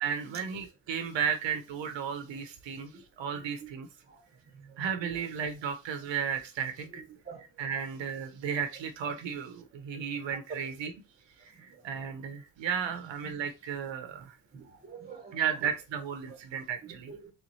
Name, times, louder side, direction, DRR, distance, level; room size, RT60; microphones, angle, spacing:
voice 1, 0.0-3.9 4.8-7.0 7.6-10.9 11.4-14.4 15.3-17.1, right 7 dB, 65° right, 0.8 m, -34 dB
voice 2, 4.8-5.2 6.9-7.4 12.9-13.1 14.5-15.6 16.8-17.3, right 6 dB, 20° right, 1.0 m, -47 dB
3.5 x 3.1 x 4.0 m
cardioid pair, 160°, 49 cm